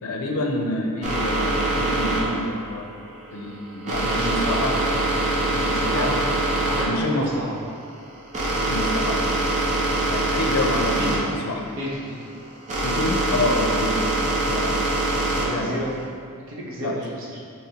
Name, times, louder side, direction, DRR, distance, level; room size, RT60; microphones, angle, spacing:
voice 1, 0.0-2.9 3.3-4.7 5.5-6.2 6.8-7.3 8.7-9.2 10.0-11.6 12.8-14.1 14.5-14.7 15.5-15.9 16.8-17.0, left 2 dB, 70° left, 1 dB, 0.5 m, -27 dB
sound 1, 1.0-16.0, right 2 dB, 35° right, 0.6 m, -24 dB
voice 2, 4.0-5.1 5.7-6.1 6.6-7.6 11.0-11.2 11.8-12.2 15.3-15.9 16.5-17.4, equal, 60° right, -5 dB, 0.8 m, -31 dB
4.9 x 2.9 x 2.8 m, 2.2 s
head